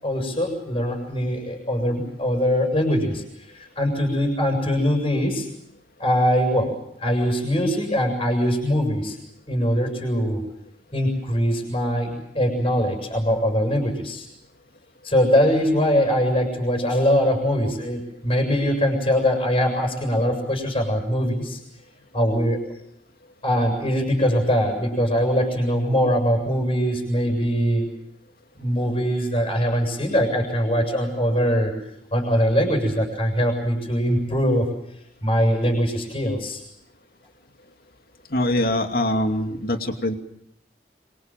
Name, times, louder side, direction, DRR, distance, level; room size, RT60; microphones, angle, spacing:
voice 1, 0.0-3.2 3.5-5.5 6.0-6.7 7.0-9.2 9.5-10.4 10.9-14.3 15.0-21.6 22.1-22.6 23.4-27.9 28.5-31.7 32.1-34.7 35.2-36.6, equal, 30° left, 2 dB, 6.9 m, -22 dB
voice 2, 38.3-40.1, left 1 dB, 55° left, 5 dB, 2.7 m, -23 dB
25.0 x 25.0 x 7.6 m, 0.77 s
head